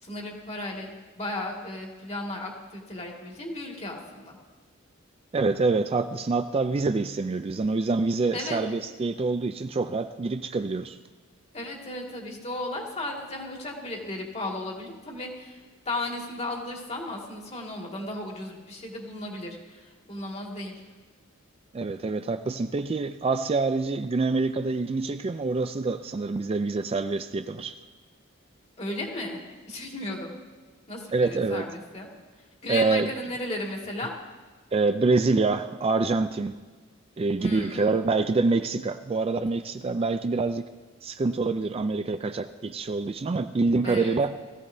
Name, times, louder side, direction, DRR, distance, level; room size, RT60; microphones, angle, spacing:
voice 1, 0.0-4.4 8.3-8.6 11.5-15.6 15.9-20.8 28.8-29.4 29.7-30.4 30.9-32.1 32.6-34.1 37.4-38.0 43.8-44.2, left 1 dB, 30° left, -1 dB, 2.1 m, -35 dB
voice 2, 5.3-11.0 21.7-27.8 31.1-31.7 32.7-33.1 34.7-36.6 37.2-40.6 41.0-44.3, right 3 dB, 30° right, 9 dB, 0.3 m, -26 dB
19.0 x 15.0 x 2.7 m, 1.4 s
head